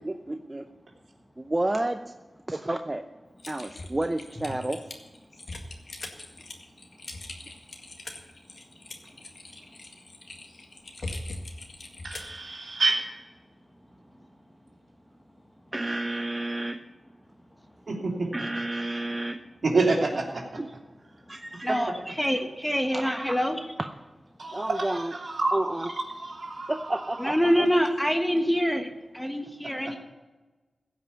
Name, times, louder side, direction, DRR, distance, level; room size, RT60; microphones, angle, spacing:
voice 1, 0.0-0.7 1.4-2.0 2.5-3.0 3.5-4.8 15.7-16.8 18.3-19.4 20.6-20.7 21.3-21.8 22.9-23.4 23.8-23.9 24.5-25.2 25.5-25.9 26.7-27.7, right 1 dB, 25° right, 6 dB, 0.7 m, -30 dB
Typing, 3.4-12.4, left 2 dB, 60° left, 1.9 m, -41 dB
voice 2, 12.0-13.0 17.9-18.3 19.6-20.4 21.7-21.8 24.4-26.9 29.8-30.0, right 3 dB, 65° right, -1 dB, 3.0 m, -28 dB
voice 3, 22.2-23.6 27.2-28.9 29.1-30.0, equal, 5° left, 5 dB, 1.4 m, -25 dB
16.5 x 5.8 x 8.4 m, 1.2 s
cardioid pair, 60°, 0 cm